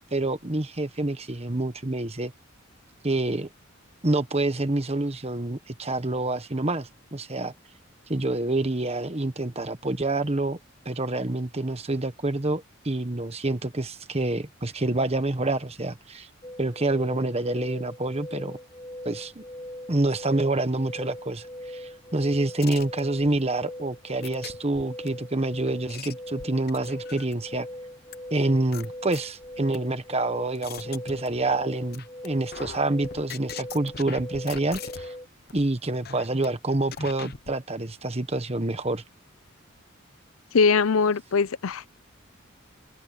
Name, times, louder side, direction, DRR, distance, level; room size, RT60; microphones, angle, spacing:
voice 1, 0.1-2.3 3.0-3.5 4.0-7.5 8.1-10.6 10.8-16.3 16.6-18.6 19.0-19.4 19.9-27.7 28.3-35.1 35.5-39.0, right 2 dB, 30° right, 1.3 m, -27 dB
sound 1, 16.4-35.3, left 1 dB, 20° left, 2.6 m, -41 dB
sound 2, 22.6-23.4 24.2-25.1 25.7-27.5 28.1-28.2 28.7-29.8 30.3-31.6 31.9-32.3 32.5-35.2 35.5-35.7 36.0-36.5 36.9-37.5, left 6 dB, 45° left, 0.9 m, -40 dB
voice 2, 40.5-41.9, left 5 dB, 80° left, 0.5 m, -21 dB
open air
head